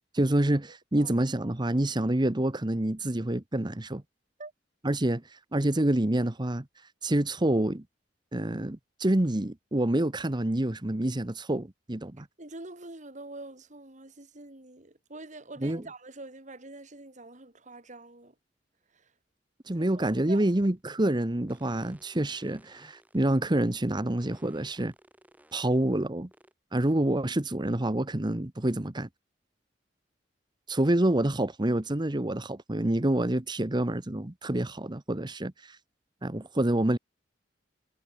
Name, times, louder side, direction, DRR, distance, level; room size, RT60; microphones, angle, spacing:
voice 1, 0.1-4.0 4.8-6.7 7.0-7.8 8.3-12.3 15.6-15.8 19.7-24.9 25.5-26.3 26.7-29.1 30.7-35.8 36.2-37.0, right 1 dB, 25° right, 1.1 m, -27 dB
voice 2, 12.4-18.3 18.9-19.1 19.7-20.4, right 2 dB, 45° right, 3.2 m, -45 dB
sound 1, 20.3-20.8 21.5-23.4 24.2-25.9 26.3-26.5, right 1 dB, 10° right, 6.8 m, -60 dB
head